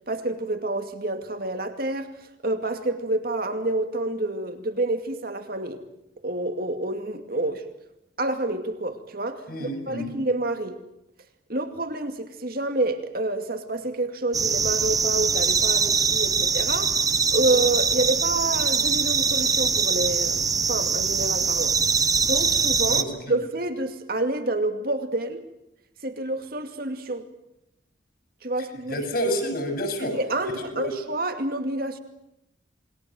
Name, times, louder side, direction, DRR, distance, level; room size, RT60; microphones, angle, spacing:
voice 1, 0.1-5.8 6.2-7.7 8.2-10.8 11.5-17.0 17.3-21.8 22.2-25.4 26.0-27.3 28.4-28.9 30.0-32.0, right 2 dB, 50° right, 2.4 m, -28 dB
voice 2, 9.5-10.1 22.8-23.3 28.9-30.2 30.7-30.9, equal, 50° left, 6.9 m, -29 dB
sound 1, 14.3-23.0, right 5 dB, 20° right, 1.0 m, -23 dB
27.5 x 22.0 x 7.7 m
head